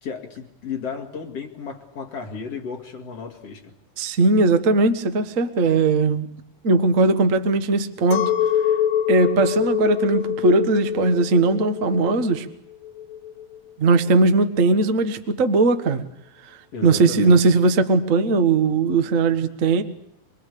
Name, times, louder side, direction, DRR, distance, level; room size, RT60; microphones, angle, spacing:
voice 1, 0.0-3.7 16.7-17.4, left 5 dB, 50° left, 3 dB, 3.1 m, -34 dB
voice 2, 4.0-6.3 6.6-8.3 9.1-12.5 13.8-16.0 16.8-19.8, right 3 dB, 85° right, 8 dB, 0.7 m, -19 dB
Chink clink, 8.1-13.6, left 10 dB, 90° left, 2.9 m, -25 dB
25.5 x 21.5 x 8.5 m, 0.75 s
omnidirectional pair, 4.0 m